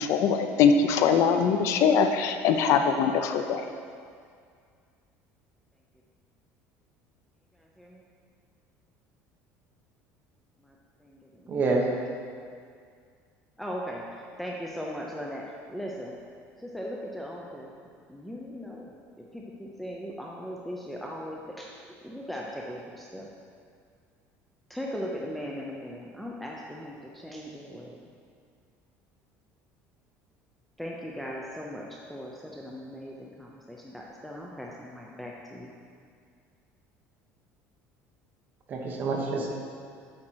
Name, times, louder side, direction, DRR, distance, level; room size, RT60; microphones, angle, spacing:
voice 1, 0.0-3.6, left 6 dB, 55° left, 6 dB, 0.5 m, -22 dB
voice 2, 7.6-8.0 10.6-10.7 11.0-11.6 13.6-16.2 16.6-17.7 18.1-21.7 22.0-23.3 24.7-28.1 30.8-35.7, equal, ahead, -3 dB, 0.6 m, -39 dB
voice 3, 11.5-11.8 38.7-39.5, right 3 dB, 30° right, 0 dB, 1.1 m, -27 dB
8.8 x 4.3 x 6.2 m, 2.2 s
cardioid pair, 160°, 6 cm